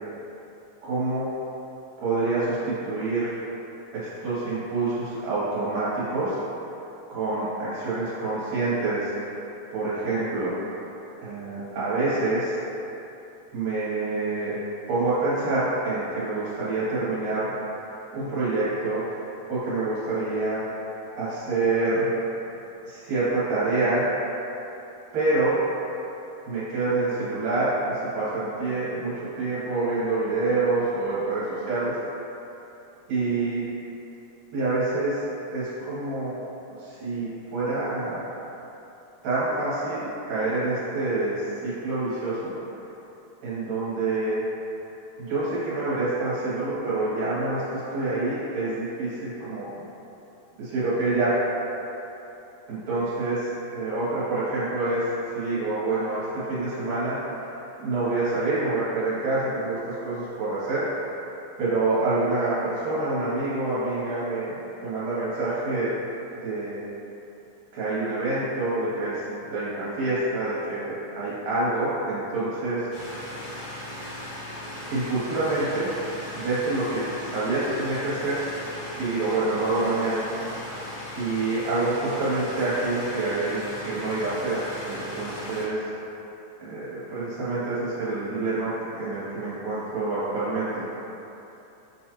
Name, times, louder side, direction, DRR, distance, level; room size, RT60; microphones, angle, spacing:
voice 1, 0.8-1.3 2.0-3.3 3.9-6.4 7.1-9.4 9.7-10.5 11.2-12.6 13.5-14.6 14.9-17.5 18.1-19.2 19.5-20.6 21.1-22.2 22.8-24.1 25.1-25.6 26.5-31.9 33.1-33.6 34.5-35.3 35.5-36.4 36.8-38.3 39.2-42.5 43.4-44.4 45.2-49.7 50.6-51.4 52.7-57.2 57.8-60.8 61.6-66.0 66.4-66.8 67.7-72.9 74.9-75.9 76.3-78.4 79.0-80.3 81.1-84.6 84.9-85.8 86.6-90.9, right 2 dB, 75° right, -11 dB, 2.4 m, -27 dB
sound 1, 72.9-85.6, left 1 dB, 65° left, 2.1 m, -37 dB
6.9 x 2.3 x 2.9 m, 2.9 s
omnidirectional pair, 3.5 m